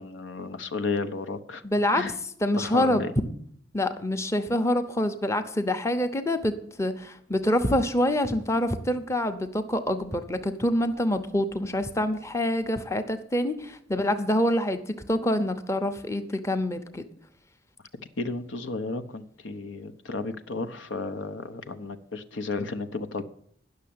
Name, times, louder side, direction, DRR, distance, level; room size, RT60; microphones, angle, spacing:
voice 1, 0.0-1.6 1.9-2.2 2.6-3.1 18.2-23.2, left 3 dB, 85° left, 9 dB, 0.9 m, -33 dB
voice 2, 1.6-2.0 2.4-3.0 3.7-6.5 6.8-14.8 15.1-17.0, left 1 dB, 15° left, 8 dB, 0.7 m, -26 dB
10.5 x 6.5 x 8.6 m, 0.63 s
head